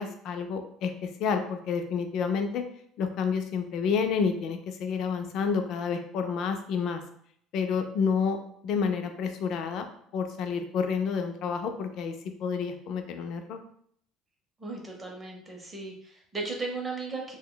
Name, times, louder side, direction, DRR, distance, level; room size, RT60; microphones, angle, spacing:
voice 1, 0.0-2.6 3.0-7.0 7.5-8.4 8.6-9.9 10.1-13.6, left 6 dB, 50° left, 6 dB, 0.4 m, -29 dB
voice 2, 14.6-17.4, right 3 dB, 15° right, 1 dB, 0.6 m, -36 dB
2.7 x 2.1 x 3.7 m, 0.67 s
cardioid pair, 160°, 0 cm